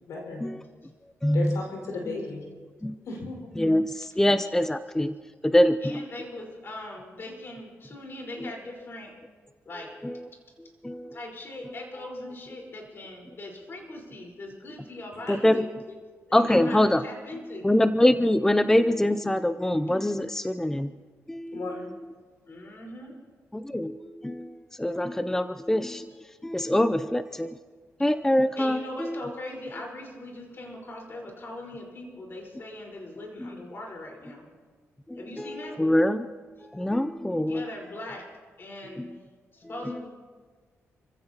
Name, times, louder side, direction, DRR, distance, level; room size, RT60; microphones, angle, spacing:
voice 1, 0.1-0.4 1.3-2.5 3.0-3.6 15.3-15.4 21.5-21.9, left 3 dB, 80° left, -1 dB, 5.2 m, -35 dB
voice 2, 1.2-1.6 2.8-3.0 3.6-5.1 5.4-6.0 8.4-8.5 10.0-10.2 10.8-11.2 15.3-15.7 16.3-17.0 17.6-20.9 21.3-21.7 23.5-26.1 26.4-27.6 28.0-29.2 33.4-33.5 35.1-36.3 36.7-37.6 39.0-39.2, left 1 dB, 10° left, 11 dB, 0.5 m, -24 dB
voice 3, 5.8-9.2 9.6-10.0 11.1-15.6 16.3-17.8 22.5-23.2 28.5-34.5 35.2-35.8 37.4-38.3 38.6-39.0 39.5-40.1, left 1 dB, 45° left, 0 dB, 4.7 m, -40 dB
29.5 x 15.5 x 3.0 m, 1.5 s
cardioid pair, 85°, 5 cm